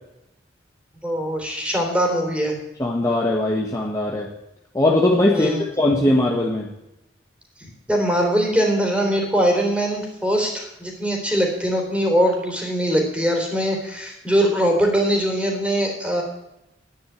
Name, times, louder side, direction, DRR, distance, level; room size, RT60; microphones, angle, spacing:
voice 1, 1.0-2.6 5.3-5.6 7.9-16.2, equal, 5° right, 1 dB, 3.7 m, -21 dB
voice 2, 2.8-4.3 4.7-6.7, left 1 dB, 20° left, -2 dB, 1.5 m, -20 dB
11.5 x 10.0 x 8.6 m, 0.88 s
head